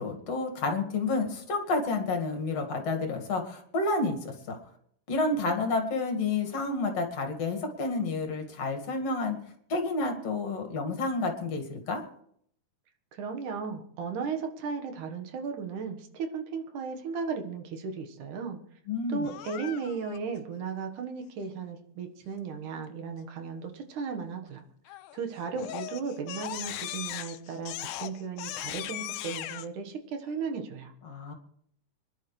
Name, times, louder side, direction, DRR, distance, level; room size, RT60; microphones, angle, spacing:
voice 1, 0.0-4.6 5.1-9.4 9.7-12.0 18.9-19.3 31.0-31.3, left 3 dB, 50° left, 4 dB, 2.9 m, -30 dB
voice 2, 13.1-18.6 19.1-24.6 25.1-30.9, right 5 dB, 70° right, 5 dB, 2.9 m, -35 dB
Crying sobbing, 19.2-20.2 24.9-25.2 25.6-29.7, left 13 dB, 80° left, 2.1 m, -38 dB
25.0 x 11.5 x 3.3 m, 0.68 s
omnidirectional pair, 3.8 m